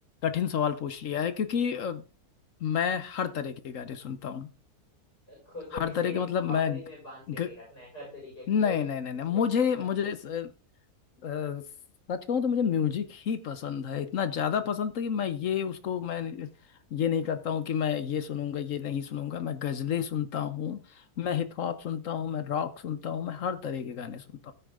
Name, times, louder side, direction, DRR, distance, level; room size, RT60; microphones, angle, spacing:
voice 1, 0.2-2.0 2.6-4.5 5.8-6.8 7.4-7.5 8.5-10.5 11.2-11.6 12.1-16.5 16.9-20.8 21.2-24.5, left 8 dB, 60° left, 1.1 m, -30 dB
voice 2, 5.3-8.9 9.3-9.7 10.0-10.1, left 1 dB, 90° left, 5.8 m, -43 dB
14.5 x 6.3 x 3.6 m
omnidirectional pair, 1.7 m